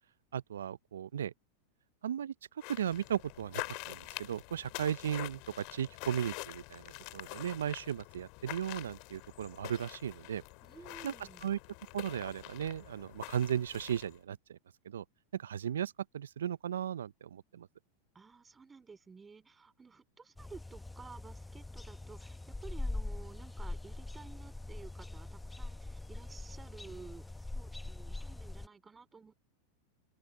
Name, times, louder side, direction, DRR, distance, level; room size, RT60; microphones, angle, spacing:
voice 1, 0.3-1.3 2.0-2.3 2.7-10.4 11.0-11.1 11.4-11.6 11.9-14.6 14.8-15.0 15.3-17.7, right 9 dB, 80° right, 0.4 m, -36 dB
sound 1, 2.6-14.2, left 29 dB, 55° left, 2.1 m, -46 dB
voice 2, 10.6-11.5 18.1-29.3, right 4 dB, 15° right, 3.2 m, -53 dB
sound 2, 20.4-28.7, left 2 dB, 10° left, 1.1 m, -42 dB
open air
hypercardioid pair, 100°, 0 cm